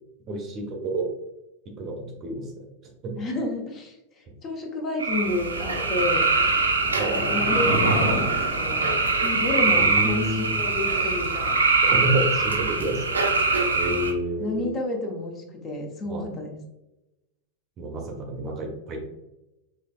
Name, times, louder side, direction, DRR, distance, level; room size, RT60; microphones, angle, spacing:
voice 1, 0.3-1.1 1.8-2.6 3.0-3.1 5.8-5.9 7.0-7.2 9.6-10.6 11.8-13.2 13.7-14.6 16.1-16.3 17.8-19.0, right 1 dB, 30° right, 2 dB, 0.7 m, -29 dB
voice 2, 3.2-6.3 7.1-8.9 9.2-11.6 14.4-16.6, left 2 dB, 30° left, 2 dB, 0.8 m, -30 dB
sound 1, 5.0-14.1, right 3 dB, 75° right, 0.6 m, -23 dB
sound 2, 6.0-9.7 10.0-10.1, equal, 65° left, 1.2 m, -30 dB
5.0 x 3.2 x 2.2 m, 0.96 s
figure-of-eight pair, 90°, 0 cm